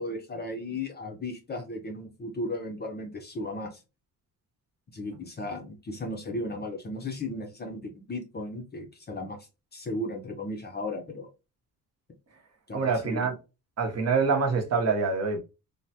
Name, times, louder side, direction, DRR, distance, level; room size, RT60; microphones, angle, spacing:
voice 1, 0.0-3.8 4.9-9.4 9.7-11.3 12.7-13.3, left 1 dB, 30° left, 0.5 m, -35 dB
voice 2, 12.7-13.4 13.8-15.4, right 4 dB, 45° right, 0.8 m, -25 dB
3.3 x 2.1 x 2.7 m
cardioid pair, 140°, 35 cm